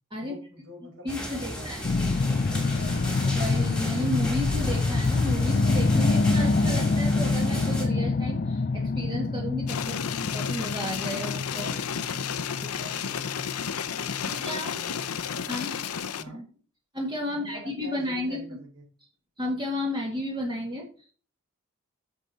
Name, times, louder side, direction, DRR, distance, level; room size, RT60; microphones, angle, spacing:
voice 1, 0.2-1.9 2.3-3.0 11.5-13.4 14.2-15.8 16.2-16.5 17.3-18.8, equal, 60° right, -2 dB, 5.5 m, -45 dB
voice 2, 1.0-1.8 3.3-10.0 10.3-11.6 12.6-12.7 14.3-14.7 15.5-15.7 16.3-16.5 16.9-18.4 19.4-20.9, left 1 dB, 20° right, -1 dB, 1.9 m, -32 dB
sound 1, 1.1-7.8, equal, 5° left, 2.4 m, -35 dB
sound 2, 1.8-14.5 15.0-15.1, left 3 dB, 40° left, 0.4 m, -26 dB
sound 3, 9.7-16.2, left 7 dB, 90° left, 0.7 m, -32 dB
10.0 x 7.1 x 4.3 m, 0.40 s
head